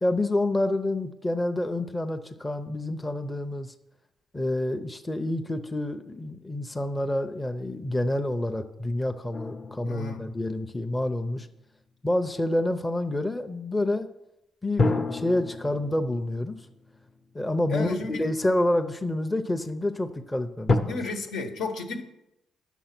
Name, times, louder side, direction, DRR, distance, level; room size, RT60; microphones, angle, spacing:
voice 1, 0.0-3.7 4.3-11.5 12.0-14.1 14.6-16.6 17.3-21.0, left 1 dB, 15° left, 7 dB, 0.6 m, -28 dB
sound 1, 9.3-11.9 14.8-18.1 18.8-18.9 20.7-20.8, left 3 dB, 40° left, 0.9 m, -31 dB
voice 2, 9.8-10.2 17.7-18.3 20.9-22.0, left 3 dB, 85° left, 4 dB, 1.3 m, -32 dB
9.1 x 6.3 x 5.9 m, 0.86 s
cardioid pair, 90°, 0 cm